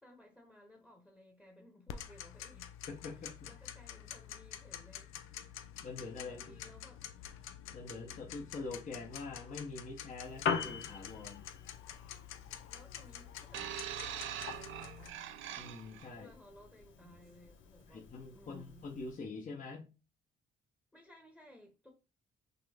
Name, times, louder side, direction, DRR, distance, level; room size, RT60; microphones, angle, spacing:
voice 1, 0.0-2.8 3.2-5.1 6.1-7.0 12.7-15.2 16.1-18.1 18.3-18.9 20.9-21.9, left 1 dB, 5° left, 1.1 m, -59 dB
Tick-tock, 1.9-15.1, left 10 dB, 90° left, 0.5 m, -48 dB
voice 2, 2.9-3.3 5.8-6.7 7.7-11.5 15.6-16.3 17.9-19.9, left 3 dB, 40° left, 1.0 m, -45 dB
Piano, 10.2-19.2, left 6 dB, 70° left, 0.9 m, -43 dB
sound 1, 13.5-16.1 17.0-17.2, right 11 dB, 80° right, 0.5 m, -43 dB
5.8 x 2.2 x 3.4 m
cardioid pair, 90°, 20 cm